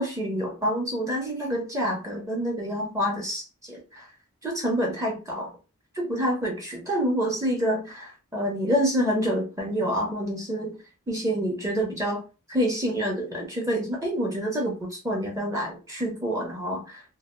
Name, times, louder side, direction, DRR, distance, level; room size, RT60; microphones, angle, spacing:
voice 1, 0.0-4.1 4.4-5.5 5.9-10.7 11.1-12.2 12.5-17.0, equal, 15° right, 0 dB, 0.5 m, -27 dB
2.6 x 2.2 x 2.4 m, 0.32 s
head